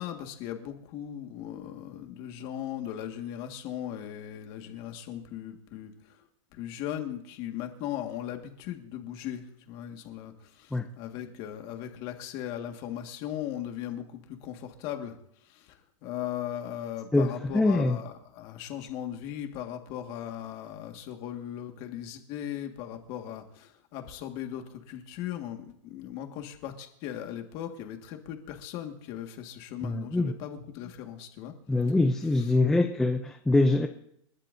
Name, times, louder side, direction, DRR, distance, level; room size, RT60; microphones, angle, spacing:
voice 1, 0.0-6.2 6.5-15.2 15.5-15.8 16.0-31.5, left 11 dB, 30° left, 4 dB, 1.8 m, -38 dB
voice 2, 17.1-18.0 29.8-30.3 31.7-33.9, left 2 dB, 5° left, 4 dB, 0.4 m, -24 dB
29.5 x 12.0 x 2.7 m, 0.74 s
supercardioid pair, 170°, 17 cm